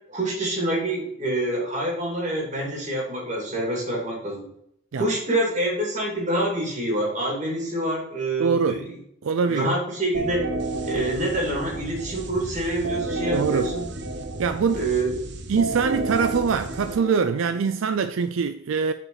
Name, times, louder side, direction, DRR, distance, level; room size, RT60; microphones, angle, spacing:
voice 1, 0.1-4.5 4.9-8.8 9.4-10.5 10.8-13.9 14.7-15.1, right 1 dB, 35° right, 2.7 m, -26 dB
voice 2, 8.4-8.8 9.2-9.7 13.3-13.7 14.4-14.8 15.5-18.9, right 5 dB, 80° right, 0.4 m, -23 dB
sound 1, 10.1-17.8, right 2 dB, 55° right, 0.9 m, -31 dB
6.5 x 5.1 x 5.6 m
head